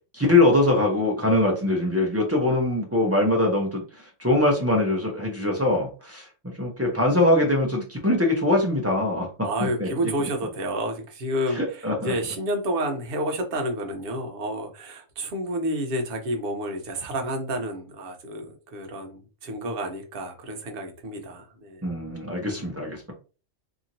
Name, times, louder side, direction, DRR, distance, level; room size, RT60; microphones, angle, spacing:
voice 1, 0.1-6.3 6.6-9.9 11.5-12.1 21.8-23.1, left 2 dB, 20° right, -2 dB, 0.5 m, -22 dB
voice 2, 9.4-21.8, right 1 dB, 50° right, 4 dB, 0.8 m, -30 dB
2.9 x 2.7 x 2.6 m, 0.34 s
omnidirectional pair, 1.3 m